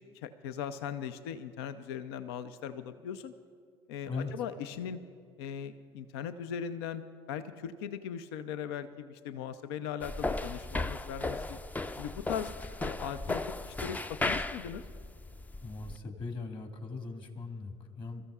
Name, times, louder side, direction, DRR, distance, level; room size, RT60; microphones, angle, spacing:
voice 1, 0.1-3.3 3.9-5.0 5.4-7.0 7.3-11.6 12.0-12.5 12.8-14.8, left 8 dB, 70° left, 11 dB, 0.5 m, -39 dB
sound 1, 10.0-16.0, left 2 dB, 10° left, 0.4 m, -36 dB
voice 2, 15.6-18.2, left 4 dB, 35° left, 5 dB, 1.7 m, -39 dB
26.5 x 14.0 x 2.4 m, 2.3 s
hypercardioid pair, 65°, 14 cm